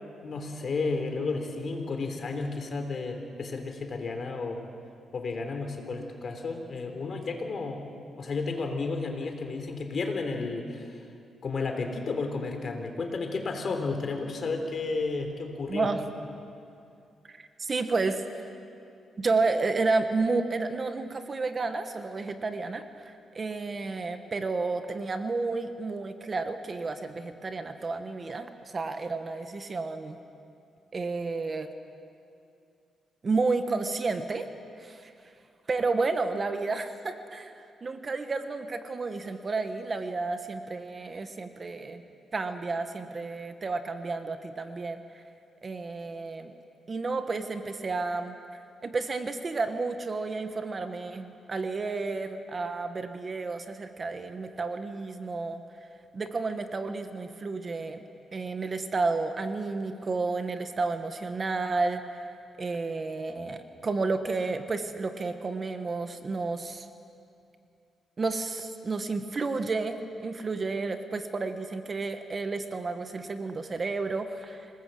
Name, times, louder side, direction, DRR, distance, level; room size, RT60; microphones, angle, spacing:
voice 1, 0.2-4.6 5.1-7.9 8.2-11.0 11.4-15.9, left 3 dB, 45° left, 4 dB, 3.5 m, -32 dB
voice 2, 15.7-16.0 17.3-18.2 19.2-30.2 30.9-31.7 33.2-34.5 34.8-35.1 35.7-42.0 42.3-45.0 45.6-46.5 46.9-48.3 48.8-55.6 56.1-58.0 58.3-62.2 62.6-66.9 68.2-74.7, right 3 dB, 35° right, 8 dB, 1.3 m, -31 dB
27.0 x 19.0 x 7.8 m, 2.5 s
cardioid pair, 110°, 0 cm